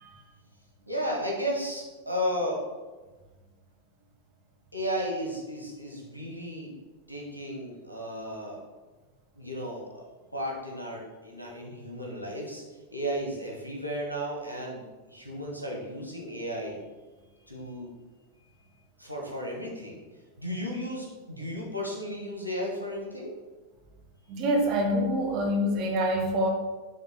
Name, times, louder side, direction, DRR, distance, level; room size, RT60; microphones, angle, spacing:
voice 1, 0.9-2.6 4.7-6.7 7.1-8.6 9.4-10.0 10.3-12.6 12.9-14.8 15.1-16.8 17.5-17.9 19.0-20.0 20.4-23.3, equal, 90° left, -2 dB, 1.6 m, -34 dB
voice 2, 24.3-26.5, equal, 40° right, 1 dB, 1.7 m, -25 dB
9.4 x 3.7 x 4.2 m, 1.3 s
figure-of-eight pair, 90°, 0 cm